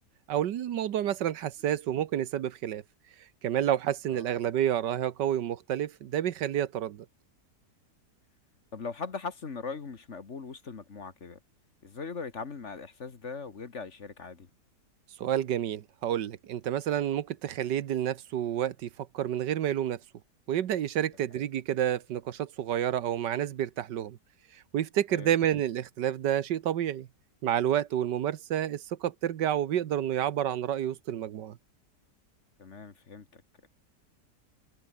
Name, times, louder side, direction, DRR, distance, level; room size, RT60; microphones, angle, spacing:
voice 1, 0.3-2.8 3.4-7.0 15.2-20.0 20.5-24.2 24.5-27.1 27.4-31.6, right 10 dB, 80° right, 1.6 m, -29 dB
voice 2, 8.7-11.4 11.8-14.5 25.1-25.3 32.6-33.7, left 4 dB, 45° left, 1.8 m, -40 dB
omnidirectional pair, 1.8 m